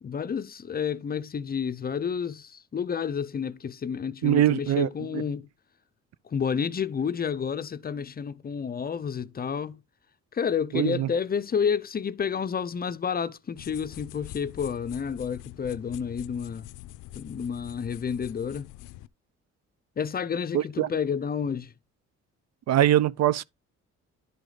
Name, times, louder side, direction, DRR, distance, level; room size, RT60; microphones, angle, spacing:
voice 1, 0.0-5.5 6.2-9.8 10.3-16.7 17.1-18.7 20.0-21.7, left 7 dB, 30° left, 0.5 m, -30 dB
voice 2, 4.2-5.2 10.7-11.1 20.5-20.9 22.7-23.4, right 12 dB, 60° right, 0.5 m, -23 dB
sound 1, 13.6-19.1, left 16 dB, 85° left, 0.5 m, -45 dB
11.0 x 4.9 x 3.9 m
cardioid pair, 90°, 30 cm